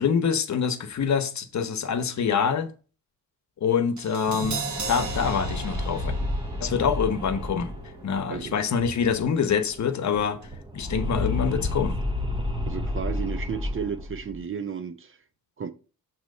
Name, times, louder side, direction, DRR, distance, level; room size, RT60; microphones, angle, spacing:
voice 1, 0.0-2.7 3.6-4.6 4.9-6.1 6.6-7.7 8.0-10.4 10.7-12.0, left 6 dB, 50° left, 1.0 m, -25 dB
Crash cymbal, 4.0-10.1 10.4-10.5, right 4 dB, 50° right, 1.4 m, -39 dB
sound 1, 4.3-9.5 9.7-9.8 10.1-14.4, left 1 dB, 15° right, 1.0 m, -31 dB
voice 2, 8.3-8.7 12.7-15.2 15.6-15.7, right 7 dB, 35° right, 0.6 m, -33 dB
7.4 x 3.0 x 5.4 m
cardioid pair, 95°, 36 cm